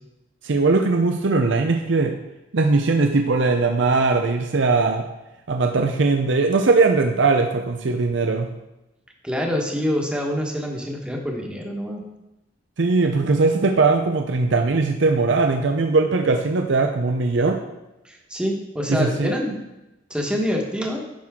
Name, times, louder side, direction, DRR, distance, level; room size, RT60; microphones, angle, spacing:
voice 1, 0.4-2.2 2.5-5.0 5.5-8.5 12.8-17.6 18.9-19.3, right 3 dB, 70° right, 4 dB, 0.6 m, -20 dB
voice 2, 9.2-12.0 18.0-19.6 20.1-21.1, equal, 5° right, 0 dB, 1.4 m, -26 dB
10.5 x 6.1 x 3.7 m, 0.96 s
head